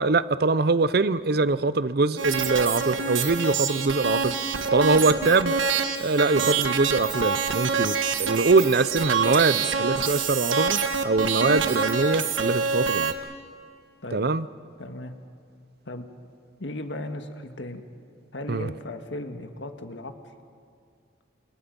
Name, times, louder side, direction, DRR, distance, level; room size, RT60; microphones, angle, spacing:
voice 1, 0.0-4.4 4.7-5.5 6.0-13.1 14.1-14.5 18.5-18.7, right 3 dB, 55° right, 16 dB, 0.6 m, -23 dB
sound 1, 2.2-13.1, right 5 dB, 85° right, 1.6 m, -26 dB
voice 2, 14.8-15.1 15.8-16.1 16.6-17.8 18.3-20.1, left 1 dB, 70° left, 7 dB, 1.7 m, -36 dB
29.5 x 27.0 x 5.3 m, 2.3 s
head